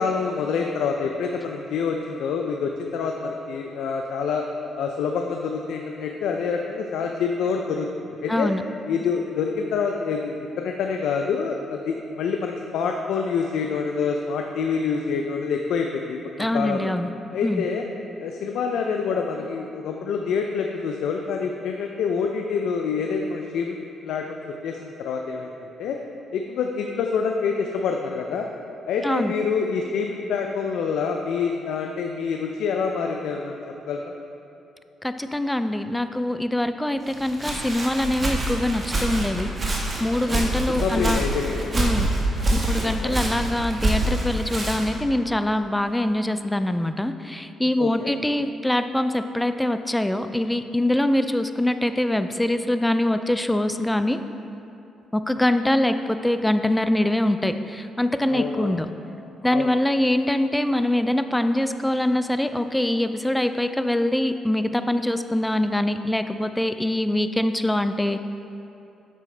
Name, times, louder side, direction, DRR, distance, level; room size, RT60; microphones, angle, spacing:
voice 1, 0.0-4.5 4.8-8.5 8.9-16.9 17.3-17.8 18.2-26.0 26.3-28.5 28.9-33.6 33.9-34.1 40.3-41.7 43.0-43.2 47.8-48.2 58.3-58.8 59.5-59.7, left 5 dB, 80° left, 2 dB, 0.4 m, -27 dB
voice 2, 8.3-8.6 16.4-17.1 17.4-17.6 29.0-29.3 35.0-41.2 41.7-42.1 42.5-54.2 55.1-58.9 59.4-68.2, left 1 dB, 5° left, 9 dB, 0.3 m, -24 dB
Walk footsteps, 37.1-45.0, right 1 dB, 35° right, 1.4 m, -26 dB
8.4 x 6.0 x 3.3 m, 2.7 s
cardioid pair, 90°, 0 cm